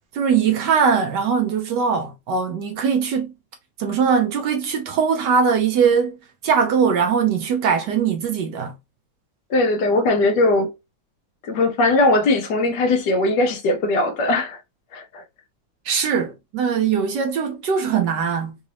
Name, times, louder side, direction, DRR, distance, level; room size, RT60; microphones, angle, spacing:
voice 1, 0.1-3.3 3.8-6.2 6.4-8.7 15.8-18.6, right 6 dB, 70° right, 1.1 m, -21 dB
voice 2, 9.5-10.7 11.4-14.6 14.9-15.2, left 2 dB, 65° left, 1.3 m, -19 dB
4.0 x 2.5 x 2.8 m
omnidirectional pair, 2.2 m